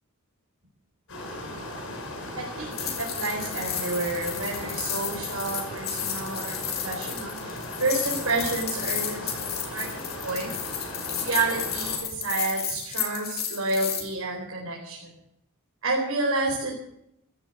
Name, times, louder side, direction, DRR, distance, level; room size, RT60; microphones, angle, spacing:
sound 1, 1.1-12.0, left 1 dB, 65° left, 6.6 m, -37 dB
voice 1, 2.3-9.9 10.2-10.5 11.1-15.1 15.8-16.7, right 2 dB, 75° right, -3 dB, 4.3 m, -30 dB
sound 2, 2.7-14.0, left 8 dB, 50° left, 2.9 m, -33 dB
14.5 x 11.5 x 7.6 m, 0.78 s
head